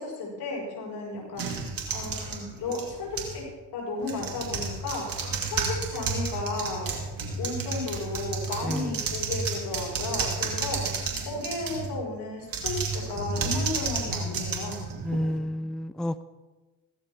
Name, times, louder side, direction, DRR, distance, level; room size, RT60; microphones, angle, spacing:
voice 1, 0.0-1.6 1.9-3.4 3.7-5.1 5.5-6.9 7.4-14.8, left 3 dB, 70° left, -4 dB, 5.5 m, -34 dB
sound 1, 1.4-3.4 4.0-11.9 12.4-15.4, right 4 dB, 55° right, 2.8 m, -32 dB
voice 2, 15.0-16.2, equal, ahead, 14 dB, 0.5 m, -30 dB
16.5 x 13.5 x 3.6 m, 1.2 s
hypercardioid pair, 45°, 41 cm